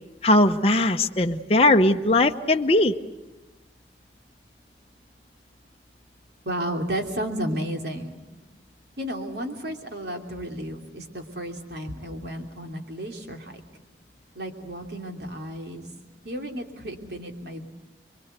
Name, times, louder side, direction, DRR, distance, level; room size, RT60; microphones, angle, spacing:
voice 1, 0.2-2.9, left 2 dB, 35° left, 5 dB, 0.9 m, -19 dB
voice 2, 6.4-8.2 9.0-13.6 14.3-15.9 16.2-17.7, right 1 dB, 70° right, 3 dB, 3.1 m, -33 dB
26.5 x 23.5 x 8.2 m, 1.1 s
head